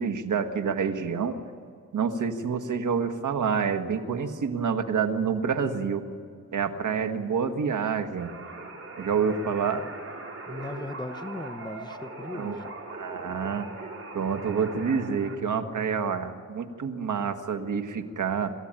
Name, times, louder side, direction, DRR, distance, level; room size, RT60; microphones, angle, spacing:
voice 1, 0.0-1.4 1.9-6.0 6.5-8.3 9.0-9.8 12.3-12.6 12.9-13.9 14.1-18.5, right 6 dB, 90° right, 7 dB, 1.7 m, -28 dB
sound 1, 8.2-15.4, right 3 dB, 50° right, 4.4 m, -40 dB
voice 2, 10.5-12.8, left 2 dB, 15° left, 10 dB, 1.0 m, -38 dB
27.0 x 14.5 x 9.1 m, 2.2 s
wide cardioid pair, 105°, 30 cm